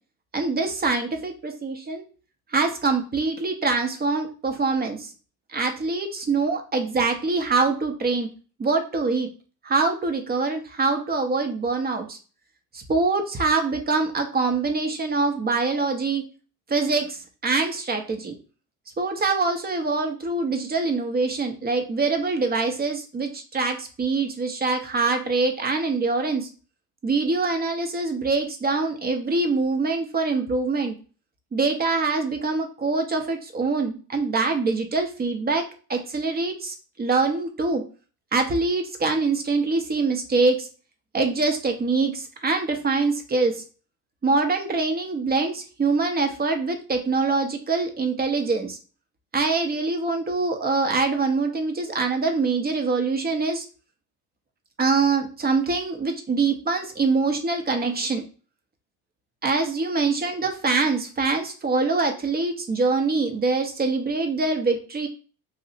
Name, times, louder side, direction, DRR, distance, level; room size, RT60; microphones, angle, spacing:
voice 1, 0.3-2.0 2.5-5.1 5.5-8.3 8.6-9.3 9.6-12.2 12.7-16.2 16.7-18.3 19.0-26.5 27.0-31.0 31.5-35.6 35.9-37.8 38.3-40.7 41.1-43.6 44.2-48.8 49.3-53.6 54.8-58.2 59.4-65.1, right 3 dB, 20° right, 5 dB, 0.6 m, -24 dB
2.6 x 2.1 x 4.0 m, 0.36 s
supercardioid pair, 90°, 43 cm